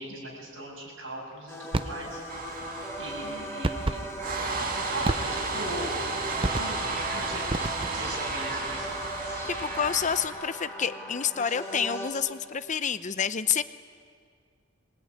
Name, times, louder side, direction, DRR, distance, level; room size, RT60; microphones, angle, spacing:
voice 1, 0.0-2.2 3.0-4.2 4.9-6.0 6.5-7.4 7.9-8.8, right 1 dB, 65° right, -1 dB, 7.7 m, -39 dB
sound 1, 1.5-12.1, equal, 15° left, 4.2 m, -38 dB
sound 2, 1.7-2.0 3.6-4.1 5.0-5.6 6.4-6.9 7.5-8.1, right 2 dB, 25° right, 0.6 m, -30 dB
sound 3, 2.3-10.3, right 3 dB, 45° right, 2.4 m, -33 dB
voice 2, 9.5-13.6, left 7 dB, 40° left, 13 dB, 0.6 m, -28 dB
23.0 x 20.0 x 9.7 m, 2.1 s
head